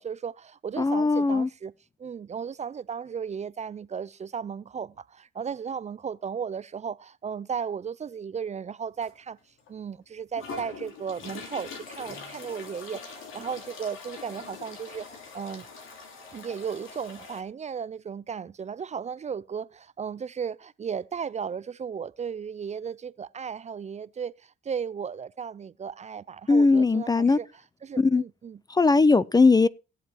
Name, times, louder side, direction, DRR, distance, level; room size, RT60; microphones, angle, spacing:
voice 1, 0.0-1.7 2.0-9.4 9.7-15.7 16.3-27.5 27.8-28.6, right 7 dB, 35° right, 0.5 m, -35 dB
voice 2, 0.8-1.5 26.5-27.4 28.0-28.2 28.7-29.7, left 3 dB, 20° left, 0.5 m, -19 dB
sound 1, 9.0-9.1 9.7-9.8 10.3-17.4, left 4 dB, 85° left, 3.2 m, -43 dB
17.0 x 7.6 x 4.6 m
cardioid pair, 90°, 20 cm